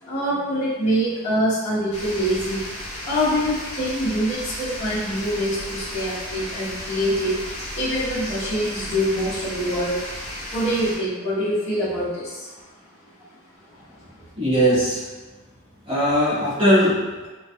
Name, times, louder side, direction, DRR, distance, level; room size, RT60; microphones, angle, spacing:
voice 1, 0.0-2.6 3.1-10.0 10.5-12.5, equal, 30° left, -10 dB, 0.8 m, -24 dB
sound 1, 1.9-11.0, left 1 dB, 85° left, 0.7 m, -34 dB
voice 2, 14.4-15.1 15.9-17.3, equal, 25° right, -10 dB, 0.9 m, -19 dB
2.3 x 2.3 x 2.6 m, 1.2 s
head